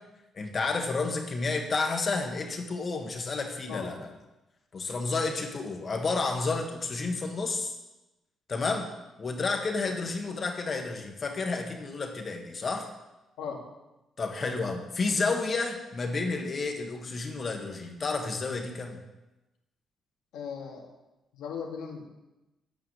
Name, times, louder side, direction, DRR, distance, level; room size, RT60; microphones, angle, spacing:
voice 1, 0.3-4.1 4.7-7.7 8.5-8.9 9.2-12.8 14.2-19.0, left 3 dB, 40° left, 3 dB, 1.6 m, -31 dB
voice 2, 20.3-20.9 21.3-22.1, left 6 dB, 85° left, 0 dB, 2.0 m, -37 dB
8.8 x 5.6 x 8.1 m, 1.0 s
cardioid pair, 90°, 0 cm